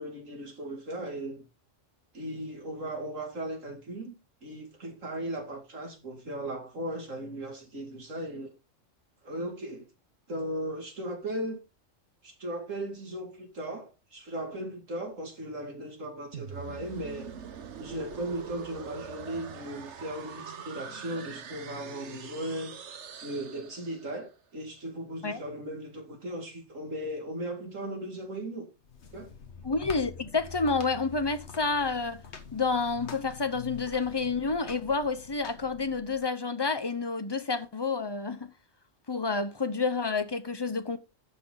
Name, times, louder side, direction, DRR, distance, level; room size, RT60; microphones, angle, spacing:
voice 1, 0.0-1.4 2.1-4.1 4.4-8.5 9.2-9.8 10.3-11.6 12.2-17.3 17.8-22.8 23.2-28.7 29.1-29.3, right 1 dB, 85° right, 3.1 m, -37 dB
sound 1, 16.3-24.2, right 6 dB, 65° right, 1.3 m, -43 dB
sound 2, 28.8-36.3, left 6 dB, 60° left, 1.5 m, -46 dB
voice 2, 29.6-32.2 32.5-38.5 39.1-41.0, left 4 dB, 25° left, 0.7 m, -29 dB
11.5 x 6.2 x 3.9 m
omnidirectional pair, 1.3 m